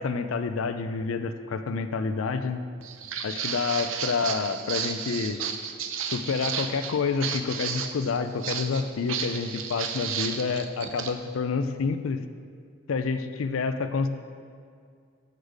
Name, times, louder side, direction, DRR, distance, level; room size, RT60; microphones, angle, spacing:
voice 1, 0.0-2.6 3.2-5.4 6.1-12.2 12.9-14.1, left 4 dB, 80° left, 9 dB, 0.5 m, -28 dB
Walk footsteps, 2.8-11.1, right 7 dB, 75° right, 0.6 m, -33 dB
8.1 x 6.5 x 5.0 m, 2.2 s
head